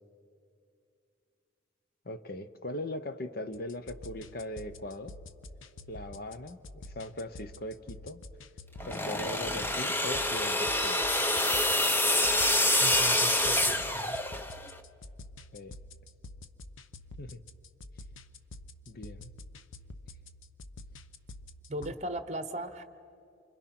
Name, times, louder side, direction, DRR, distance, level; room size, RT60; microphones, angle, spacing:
voice 1, 2.0-5.1 5.9-8.2 8.9-11.0 15.5-15.7 17.2-17.4 18.9-19.3, left 1 dB, 50° left, 11 dB, 0.8 m, -40 dB
sound 1, 3.5-21.9, left 2 dB, 75° left, 0.8 m, -48 dB
sound 2, 8.8-14.7, left 1 dB, 10° left, 0.7 m, -27 dB
voice 2, 12.8-14.1 21.7-22.8, right 1 dB, 35° right, 11 dB, 1.0 m, -38 dB
28.5 x 25.5 x 6.0 m, 2.6 s
head